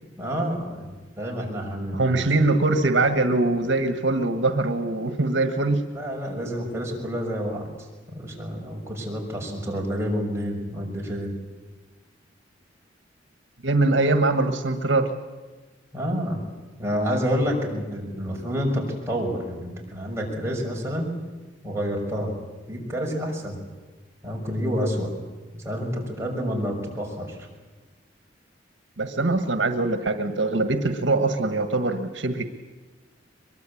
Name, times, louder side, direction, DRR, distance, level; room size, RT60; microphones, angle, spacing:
voice 1, 0.2-2.3 5.9-7.7 8.1-11.4 15.9-16.4 16.8-21.2 21.6-22.4 22.7-23.6 24.2-25.1 25.5-27.4, equal, 15° right, -1 dB, 6.1 m, -28 dB
voice 2, 1.9-5.8 13.6-15.1 29.0-32.5, right 2 dB, 80° right, 8 dB, 1.6 m, -22 dB
23.0 x 22.5 x 8.6 m, 1.3 s
head